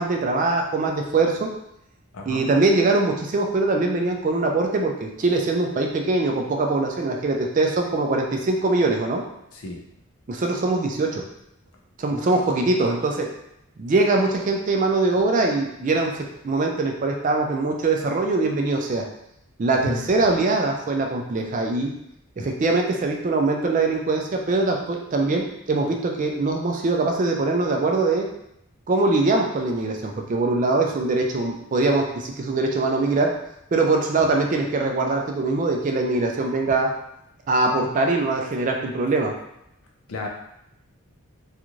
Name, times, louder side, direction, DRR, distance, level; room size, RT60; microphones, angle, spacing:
voice 1, 0.0-1.5 2.3-9.2 10.3-11.2 12.0-13.3 13.8-19.0 19.6-21.9 22.4-28.3 28.9-33.3 33.7-36.9 37.5-39.3, right 3 dB, 35° right, 2 dB, 0.3 m, -22 dB
voice 2, 2.1-2.5 9.5-9.8 12.1-12.6 19.7-20.1 34.2-34.3 40.1-40.3, left 1 dB, 70° left, 0 dB, 0.5 m, -34 dB
2.5 x 2.4 x 3.0 m, 0.80 s
head